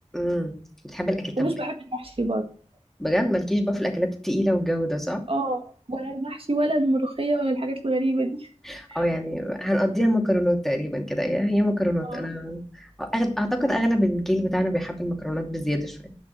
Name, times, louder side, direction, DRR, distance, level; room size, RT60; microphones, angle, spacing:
voice 1, 0.1-0.5 0.8-1.5 3.0-5.2 8.6-16.1, equal, 5° left, 2 dB, 2.8 m, -25 dB
voice 2, 1.4-2.4 5.3-8.5 8.9-9.0 12.0-12.3, right 1 dB, 50° right, 4 dB, 1.7 m, -26 dB
11.0 x 5.9 x 7.9 m, 0.42 s
wide cardioid pair, 50°, 12 cm